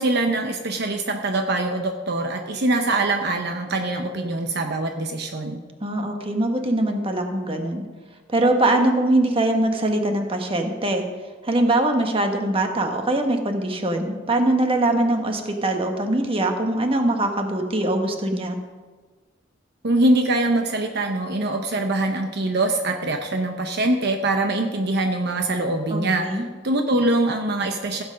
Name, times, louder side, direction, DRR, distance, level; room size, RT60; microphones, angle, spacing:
voice 1, 0.0-5.6 19.8-26.4 26.6-28.0, right 2 dB, 60° right, 4 dB, 0.9 m, -23 dB
voice 2, 5.8-7.8 8.3-11.0 11.4-18.6 25.9-26.4, right 1 dB, 30° right, 4 dB, 1.3 m, -22 dB
15.5 x 8.1 x 5.2 m, 1.4 s
head